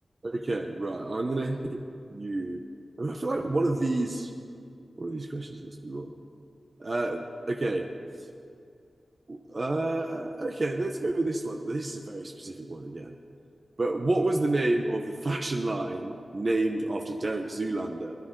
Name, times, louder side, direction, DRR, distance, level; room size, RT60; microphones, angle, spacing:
voice 1, 0.2-1.8 2.1-2.6 3.0-4.3 5.0-6.1 6.8-7.8 9.3-13.1 13.8-18.2, right 2 dB, 35° right, 3 dB, 0.8 m, -29 dB
22.0 x 11.0 x 3.8 m, 2.3 s
wide cardioid pair, 130°, 0 cm